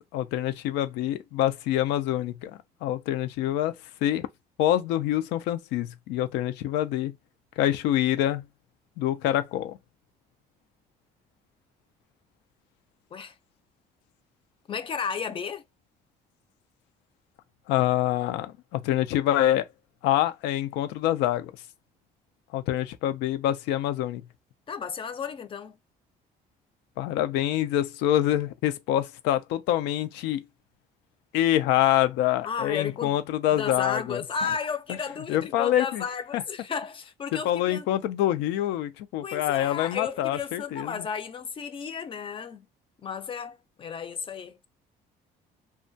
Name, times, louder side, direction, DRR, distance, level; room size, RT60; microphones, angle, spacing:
voice 1, 0.1-2.5 2.8-3.7 4.0-4.3 4.6-7.1 7.6-8.4 9.0-9.8 17.7-19.7 20.0-21.5 22.5-24.2 27.0-30.4 31.3-34.2 35.3-36.0 36.3-36.4 37.3-41.1, left 12 dB, 90° left, 0.4 m, -26 dB
voice 2, 14.7-15.6 24.7-25.8 32.4-33.1 33.5-37.9 39.2-42.7 43.0-44.7, left 6 dB, 30° left, 0.4 m, -33 dB
2.2 x 2.1 x 2.6 m
cardioid pair, 110°, 17 cm